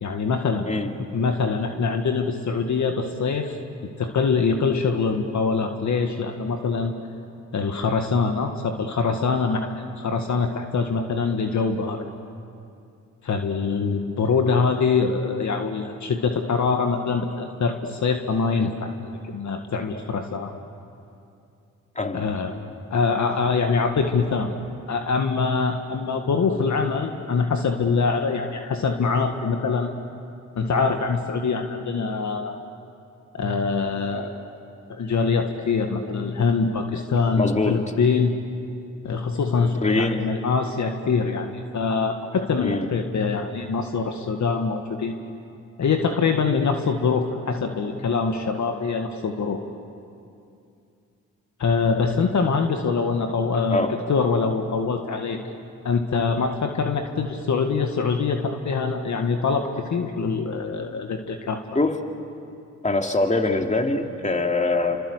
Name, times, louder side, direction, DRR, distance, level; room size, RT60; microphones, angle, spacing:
voice 1, 0.0-0.7 1.1-3.6 4.0-6.9 7.5-9.7 10.0-12.0 13.2-20.5 22.1-22.5 22.9-24.5 24.9-30.0 30.6-32.6 33.3-34.3 34.9-38.3 39.0-45.2 45.8-49.6 51.6-55.4 55.8-61.6, left 4 dB, 55° left, 5 dB, 1.9 m, -24 dB
voice 2, 37.4-37.9 39.8-40.2 42.6-42.9 53.7-54.0 61.7-62.0 62.8-65.0, left 2 dB, 20° left, 3 dB, 2.9 m, -23 dB
28.5 x 25.5 x 8.2 m, 2.5 s
supercardioid pair, 50°, 34 cm